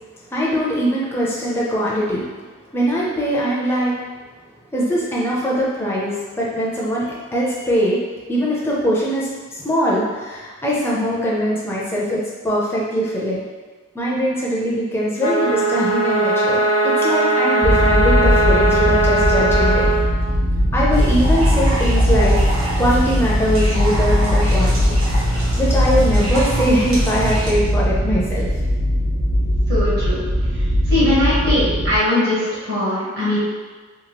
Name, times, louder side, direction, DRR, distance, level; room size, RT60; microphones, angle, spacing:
voice 1, 0.3-2.3 2.7-3.9 4.7-8.0 8.3-13.4 13.9-19.8 20.7-22.4 22.8-25.0 25.6-28.5, equal, 10° left, -5 dB, 0.4 m, -21 dB
sound 1, 15.2-20.0, right 2 dB, 70° left, 0.5 m, -18 dB
sound 2, 17.6-32.0, equal, 65° right, 0.5 m, -19 dB
sound 3, 20.9-27.5, equal, 90° right, 0.9 m, -26 dB
voice 2, 29.7-30.2 30.5-30.6 30.9-33.4, left 1 dB, 50° right, -9 dB, 0.9 m, -20 dB
2.9 x 2.3 x 2.8 m, 1.4 s
head